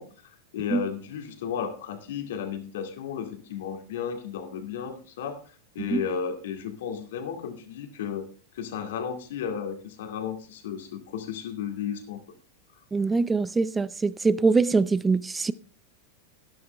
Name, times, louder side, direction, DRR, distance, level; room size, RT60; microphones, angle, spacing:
voice 1, 0.0-8.3 8.5-12.2, left 8 dB, 65° left, 2.1 m, -34 dB
voice 2, 12.9-15.5, right 4 dB, 15° right, 0.5 m, -23 dB
12.0 x 11.0 x 3.3 m
hypercardioid pair, 95°, 0 cm